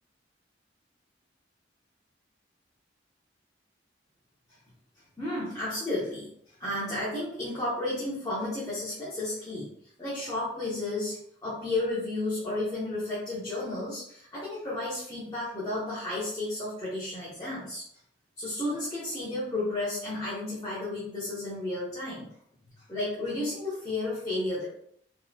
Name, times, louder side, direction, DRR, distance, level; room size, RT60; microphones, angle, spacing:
voice 1, 5.2-9.7 10.0-17.8 18.4-22.3 22.8-24.7, left 2 dB, 20° left, -9 dB, 1.0 m, -32 dB
3.9 x 3.2 x 2.3 m, 0.67 s
head